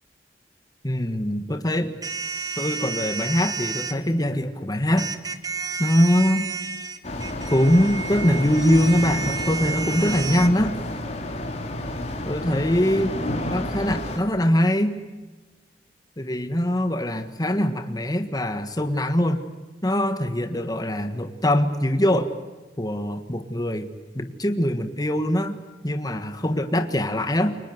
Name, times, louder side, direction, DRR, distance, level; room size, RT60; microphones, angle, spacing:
voice 1, 0.8-2.0 2.6-5.1 5.8-6.5 7.5-10.8 12.2-13.1 13.5-15.0 16.2-19.4 19.8-22.3 22.8-23.9 24.1-25.6 25.8-27.6, equal, 20° left, 7 dB, 1.6 m, -22 dB
sound 1, 2.0-4.0 5.0-10.5, right 5 dB, 20° right, 1.7 m, -31 dB
sound 2, 7.0-14.2, left 1 dB, 40° left, 4.0 m, -31 dB
29.5 x 24.0 x 8.0 m, 1.2 s
head